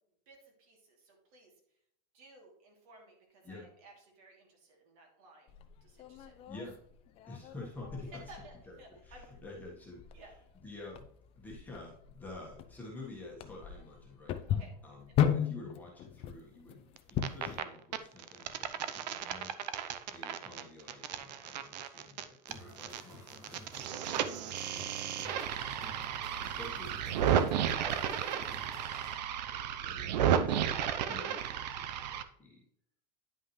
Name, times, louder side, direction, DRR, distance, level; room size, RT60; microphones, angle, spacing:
voice 1, 0.3-1.5 2.1-5.5 5.8-6.3 8.1-9.3 10.1-10.3 14.5-14.7 25.2-25.5, right 2 dB, 60° right, 0 dB, 2.9 m, -56 dB
sound 1, 5.5-17.6, left 9 dB, 30° left, 0.5 m, -37 dB
voice 2, 6.5-6.8 7.3-8.3 8.7-8.8 9.0-10.0 10.5-11.1 11.3-14.4 14.8-19.5 20.1-24.9 25.5-25.8 26.4-32.6, left 2 dB, 10° left, -4 dB, 1.5 m, -50 dB
sound 2, 17.0-17.6 17.9-23.0 23.3-32.2, right 9 dB, 90° right, 0.7 m, -33 dB
sound 3, 22.5-29.1, equal, 15° right, 2.0 m, -53 dB
9.9 x 5.6 x 3.2 m, 0.71 s
supercardioid pair, 165°, 21 cm